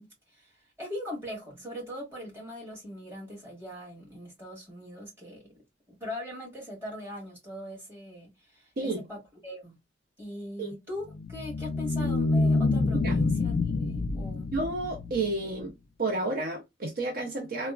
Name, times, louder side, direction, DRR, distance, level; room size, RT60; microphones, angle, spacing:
voice 1, 0.0-5.5 5.9-9.8 10.2-14.5, left 1 dB, 15° right, 1.9 m, -41 dB
sound 1, 11.1-15.6, left 3 dB, 45° left, 0.4 m, -27 dB
voice 2, 14.5-15.7 16.0-17.7, right 2 dB, 50° right, 0.6 m, -31 dB
3.4 x 2.1 x 2.2 m
head